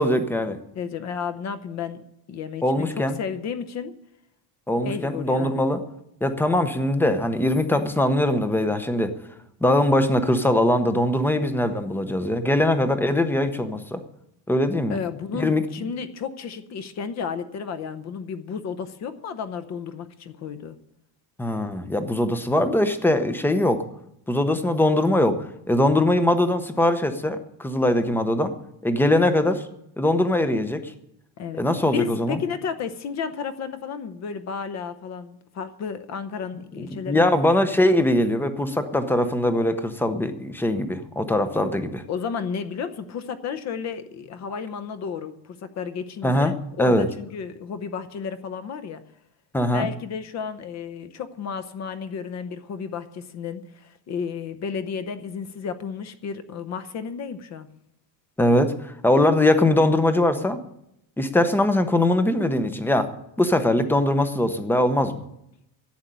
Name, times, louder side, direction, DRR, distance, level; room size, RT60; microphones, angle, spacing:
voice 1, 0.0-0.6 2.6-3.2 4.7-5.8 6.2-9.1 9.6-14.0 14.5-15.0 15.3-15.6 21.4-23.8 24.3-28.5 28.8-29.7 30.0-30.9 31.6-32.4 36.8-42.0 46.2-46.5 46.8-47.1 49.5-49.9 58.4-60.6 61.2-63.1 63.4-65.2, left 1 dB, 5° left, 9 dB, 0.7 m, -21 dB
voice 2, 0.8-2.0 2.3-3.9 4.8-5.6 14.9-20.8 31.4-31.6 31.9-37.4 42.1-49.0 49.7-57.7, left 6 dB, 35° left, 11 dB, 0.8 m, -32 dB
11.5 x 8.1 x 9.9 m, 0.80 s
cardioid pair, 170°, 47 cm